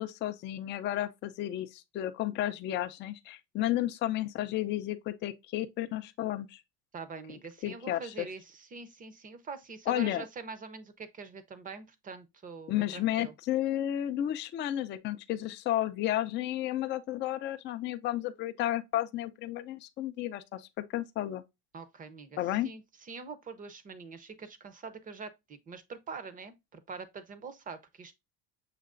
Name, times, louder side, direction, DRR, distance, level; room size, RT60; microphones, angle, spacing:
voice 1, 0.0-6.6 7.6-8.3 9.9-10.2 12.7-21.4 22.4-22.7, left 13 dB, 30° left, 0.4 m, -32 dB
voice 2, 6.9-13.3 21.7-28.1, right 5 dB, 20° right, 0.6 m, -44 dB
6.6 x 2.9 x 2.4 m
cardioid pair, 135°, 37 cm